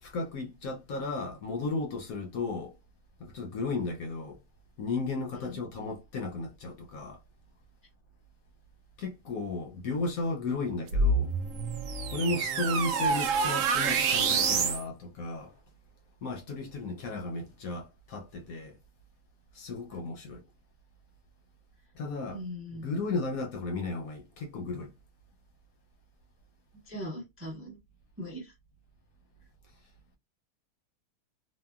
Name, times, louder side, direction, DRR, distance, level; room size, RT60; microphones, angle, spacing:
voice 1, 0.0-2.7 3.2-4.4 4.8-7.2 9.0-11.3 12.1-15.6 16.2-18.8 19.5-20.4 21.9-22.4 22.7-24.9, left 3 dB, 70° left, 0.9 m, -34 dB
sound 1, 10.9-14.8, right 4 dB, 65° right, 0.8 m, -27 dB
voice 2, 22.3-22.9 26.9-27.8 28.2-28.5, equal, 15° right, 0.5 m, -40 dB
2.9 x 2.4 x 2.3 m
omnidirectional pair, 1.8 m